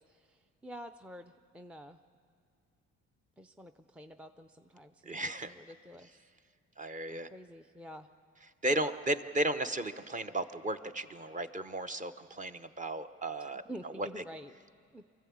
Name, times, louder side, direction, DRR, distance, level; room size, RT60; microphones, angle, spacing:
voice 1, 0.0-2.0 3.4-6.3 7.1-8.1 13.4-14.6 14.9-15.0, equal, 5° right, 8 dB, 0.5 m, -49 dB
voice 2, 5.1-5.5 6.8-7.3 8.6-13.6 14.0-14.1, right 1 dB, 25° right, 9 dB, 0.8 m, -34 dB
24.0 x 14.0 x 8.6 m, 2.3 s
cardioid pair, 90°, 30 cm